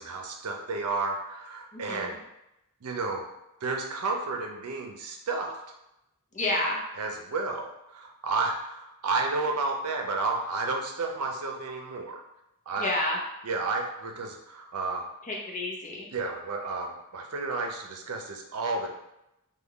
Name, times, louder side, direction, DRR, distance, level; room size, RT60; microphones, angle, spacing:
voice 1, 0.0-2.2 2.8-3.3 3.6-5.6 7.0-12.2 12.7-12.9 13.4-15.1 16.1-18.9, right 3 dB, 80° right, 2 dB, 0.6 m, -31 dB
voice 2, 1.7-2.2 6.3-6.8 12.8-13.2 15.2-16.1, left 1 dB, 35° left, -2 dB, 0.7 m, -30 dB
3.7 x 2.3 x 3.4 m, 0.88 s
head